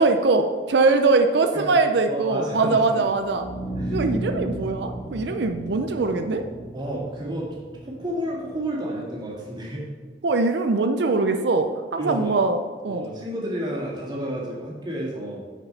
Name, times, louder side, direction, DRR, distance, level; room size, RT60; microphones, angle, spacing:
voice 1, 0.0-3.5 3.9-6.4 10.2-13.1, right 3 dB, 70° right, 7 dB, 0.5 m, -22 dB
voice 2, 2.0-3.1 3.8-4.1 6.7-7.5 7.8-9.9 12.0-12.3 12.9-15.4, right 1 dB, 25° right, -4 dB, 2.1 m, -31 dB
sound 1, 3.1-9.1, right 1 dB, 10° left, 2.0 m, -34 dB
6.7 x 6.1 x 5.7 m, 1.4 s
head